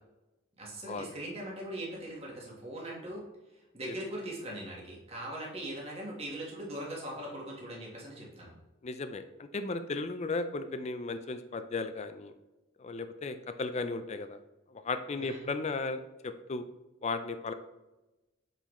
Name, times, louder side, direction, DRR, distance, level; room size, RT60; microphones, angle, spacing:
voice 1, 0.6-3.2 3.7-8.5 15.2-15.5, right 1 dB, 30° right, -3 dB, 1.4 m, -40 dB
voice 2, 8.8-12.3 12.8-14.4 14.7-16.6 17.0-17.5, left 3 dB, 35° left, 10 dB, 0.4 m, -35 dB
8.1 x 4.0 x 3.1 m, 1.0 s
head